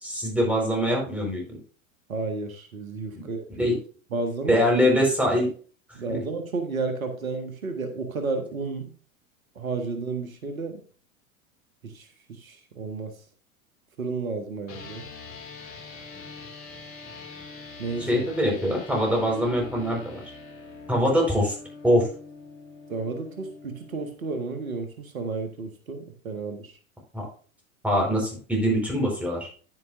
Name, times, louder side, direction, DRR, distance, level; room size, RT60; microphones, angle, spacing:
voice 1, 0.0-1.6 3.1-3.2 3.6-3.7 4.5-5.5 6.1-6.2 18.1-20.2 20.9-21.5 21.8-22.1 27.1-27.2 27.8-29.5, equal, 5° right, -1 dB, 4.5 m, -23 dB
voice 2, 2.1-3.7 4.1-4.7 5.9-8.9 9.5-10.8 11.8-13.1 14.0-15.0 17.8-18.2 22.9-26.8, right 3 dB, 75° right, 7 dB, 1.6 m, -32 dB
sound 1, 14.7-24.1, left 4 dB, 30° left, 2.6 m, -43 dB
10.0 x 9.2 x 2.6 m, 0.40 s
figure-of-eight pair, 90°, 41 cm